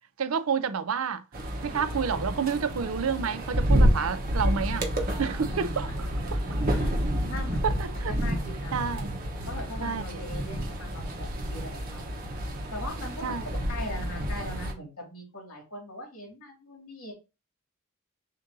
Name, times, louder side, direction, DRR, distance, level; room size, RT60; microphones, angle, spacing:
voice 1, 0.2-1.2 1.6-4.9 5.2-6.6 7.6-8.1 8.7-9.2 9.8-10.0 13.2-13.4, right 6 dB, 65° right, 0.5 m, -29 dB
sound 1, 1.3-14.7, equal, 40° right, 0.9 m, -29 dB
voice 2, 7.3-9.0 9.5-12.2 12.7-17.1, left 1 dB, 75° left, 2.3 m, -40 dB
6.3 x 2.6 x 2.6 m
head